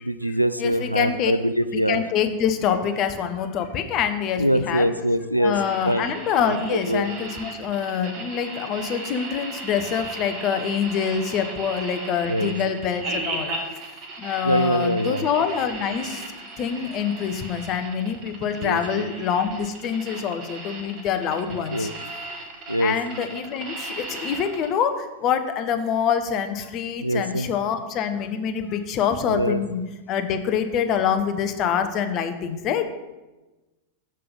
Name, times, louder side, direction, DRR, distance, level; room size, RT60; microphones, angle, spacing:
voice 1, 0.0-2.0 4.4-5.5 5.9-6.0 6.5-7.1 12.3-12.5 14.4-15.2 18.6-19.1 21.7-21.9 22.7-22.9 27.0-27.5 29.3-29.6, equal, 90° right, 12 dB, 0.3 m, -23 dB
voice 2, 0.6-1.3 1.7-4.9 5.4-13.5 14.2-16.2 16.6-21.9 22.8-24.9 25.2-29.8 30.1-32.8, left 7 dB, 35° left, 8 dB, 0.7 m, -25 dB
sound 1, 5.5-24.7, right 2 dB, 40° right, 1.4 m, -36 dB
5.7 x 5.3 x 5.3 m, 1.1 s
figure-of-eight pair, 90°, 0 cm